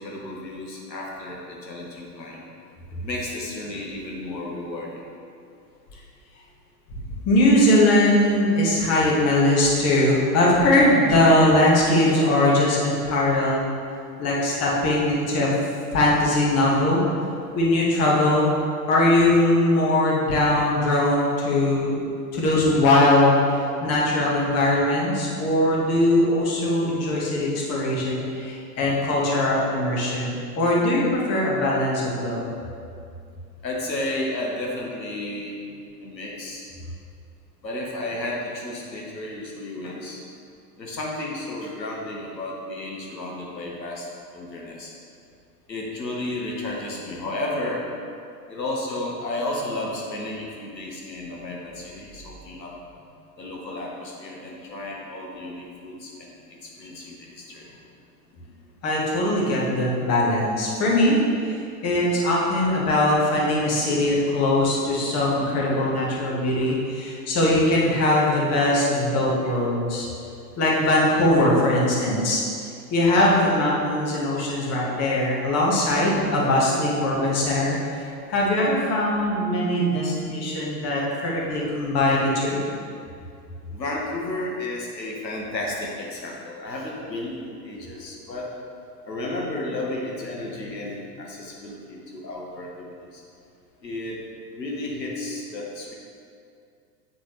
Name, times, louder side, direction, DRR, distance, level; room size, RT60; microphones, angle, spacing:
voice 1, 0.0-2.4 2.9-5.1 14.1-14.2 33.6-35.6 36.0-36.7 37.6-40.2 40.8-44.9 45.7-47.8 48.5-52.7 53.4-57.8 66.6-66.7 69.4-69.5 70.9-71.0 83.7-88.5 89.0-93.2 93.8-94.2 94.5-95.9, left 1 dB, 85° left, -3 dB, 1.1 m, -33 dB
voice 2, 7.2-13.7 14.2-15.5 15.9-17.0 17.5-18.5 18.9-21.9 22.3-32.4 58.8-61.5 61.8-70.1 70.6-72.4 72.9-82.6, left 1 dB, 30° left, -4 dB, 1.4 m, -21 dB
8.5 x 4.0 x 3.1 m, 2.4 s
figure-of-eight pair, 95°, 49 cm